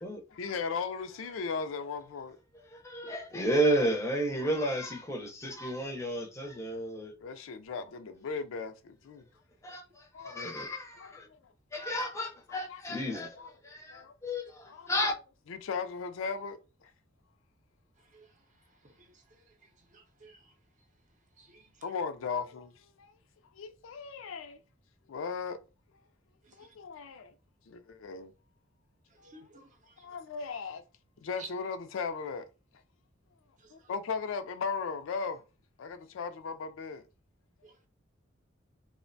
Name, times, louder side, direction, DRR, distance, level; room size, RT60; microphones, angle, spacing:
voice 1, 0.3-2.4 7.2-9.3 10.1-10.4 11.0-11.5 11.8-11.9 12.5-13.5 13.9-14.1 14.7-14.9 15.5-16.9 21.8-23.1 23.5-24.6 25.1-25.6 26.5-27.3 27.7-28.3 29.2-29.5 30.0-30.8 31.2-32.5 33.7-35.4 35.8-37.0, left 5 dB, 80° left, 0.4 m, -37 dB
voice 2, 2.7-7.1 9.6-11.3 11.7-13.4 13.6-15.1, right 1 dB, 15° left, 0.5 m, -32 dB
voice 3, 19.9-20.4 21.4-21.6 29.2-29.7 31.4-31.5, right 3 dB, 40° right, 0.5 m, -49 dB
2.5 x 2.1 x 2.5 m
head